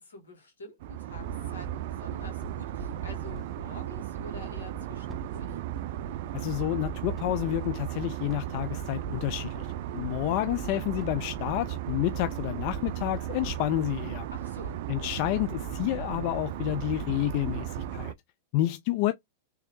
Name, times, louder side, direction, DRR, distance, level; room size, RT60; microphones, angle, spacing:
voice 1, 0.0-5.6 14.3-14.8, left 2 dB, 85° left, 2.0 m, -47 dB
sound 1, 0.8-18.1, right 10 dB, 60° right, 0.3 m, -35 dB
sound 2, 2.4-3.9 4.3-4.4 4.6-11.6 12.0-14.2 14.6-14.7 15.1-15.2, left 1 dB, 5° left, 0.8 m, -54 dB
voice 2, 6.3-9.7 9.9-14.3 14.9-18.1 18.5-19.1, left 15 dB, 50° left, 0.3 m, -29 dB
3.4 x 3.1 x 3.1 m
hypercardioid pair, 100°, 0 cm